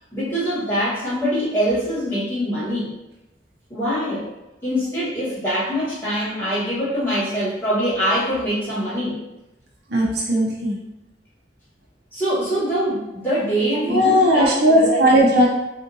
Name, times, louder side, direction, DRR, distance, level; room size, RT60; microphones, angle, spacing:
voice 1, 0.1-2.9 3.7-4.3 4.6-9.2 12.1-15.2, equal, 15° left, -11 dB, 1.4 m, -23 dB
voice 2, 9.9-10.8 13.9-15.5, equal, 65° right, -3 dB, 0.6 m, -17 dB
3.6 x 2.5 x 2.7 m, 0.95 s
head